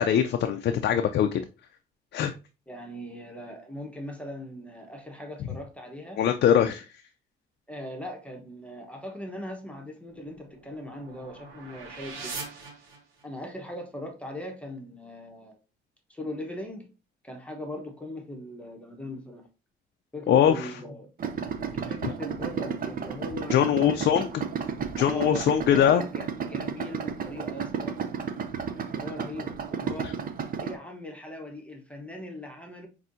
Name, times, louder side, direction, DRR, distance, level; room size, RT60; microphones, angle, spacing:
voice 1, 0.0-1.4 2.1-2.3 6.2-6.9 20.3-20.7 22.0-22.1 23.5-24.3 25.0-26.0, left 9 dB, 60° left, 0.4 m, -22 dB
voice 2, 2.7-6.2 7.7-12.5 13.2-15.6 16.1-16.9 17.2-19.4 20.1-21.1 21.7-24.0 25.0-28.0 28.9-30.1 30.6-32.9, left 1 dB, 5° left, 1.0 m, -39 dB
sound 1, 10.1-13.5, right 4 dB, 85° right, 1.1 m, -42 dB
Idling, 21.2-30.8, right 6 dB, 45° right, 0.5 m, -33 dB
5.5 x 2.7 x 2.6 m
cardioid pair, 90°, 20 cm